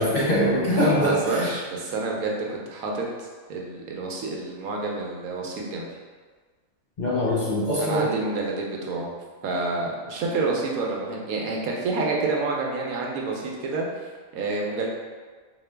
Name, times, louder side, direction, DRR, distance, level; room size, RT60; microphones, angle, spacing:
voice 1, 0.0-1.5 7.0-8.1, equal, 50° left, -7 dB, 0.5 m, -23 dB
voice 2, 0.7-5.9 7.8-9.1 9.4-13.9 14.3-14.9, right 3 dB, 90° right, -1 dB, 1.2 m, -28 dB
3.8 x 2.8 x 3.3 m, 1.5 s
omnidirectional pair, 1.4 m